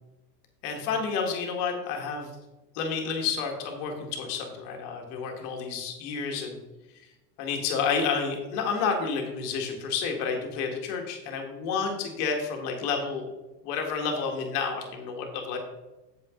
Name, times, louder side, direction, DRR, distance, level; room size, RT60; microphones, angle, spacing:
voice 1, 0.6-2.3 2.7-6.6 7.4-13.3 13.6-15.6, left 5 dB, 65° left, 2 dB, 1.9 m, -30 dB
8.2 x 6.8 x 3.7 m, 1.1 s
hypercardioid pair, 100°, 50 cm